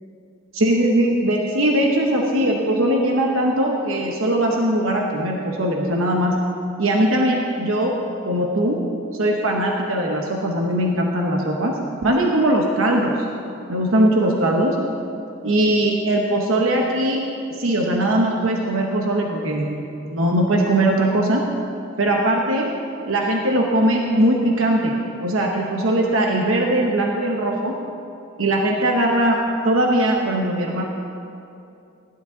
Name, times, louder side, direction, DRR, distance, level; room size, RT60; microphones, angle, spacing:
voice 1, 0.5-6.4 6.8-7.9 8.2-8.8 9.1-13.3 13.7-14.8 15.4-21.4 22.0-22.7 23.1-27.7 28.4-30.8, right 1 dB, 75° right, 0 dB, 1.0 m, -20 dB
16.0 x 11.0 x 3.9 m, 2.7 s
head